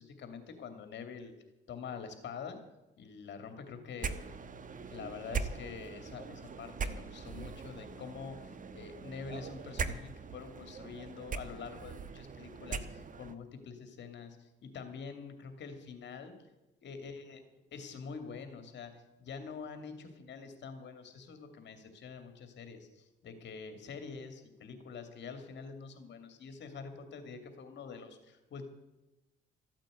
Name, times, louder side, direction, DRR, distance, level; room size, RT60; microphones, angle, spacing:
voice 1, 0.0-1.3 1.7-2.6 3.0-4.3 4.9-16.3 16.8-17.4 17.7-28.7, left 5 dB, 65° left, 7 dB, 2.6 m, -46 dB
sound 1, 4.0-13.4, right 5 dB, 40° right, 1.1 m, -41 dB
14.5 x 9.1 x 8.0 m, 1.0 s
cardioid pair, 90°, 20 cm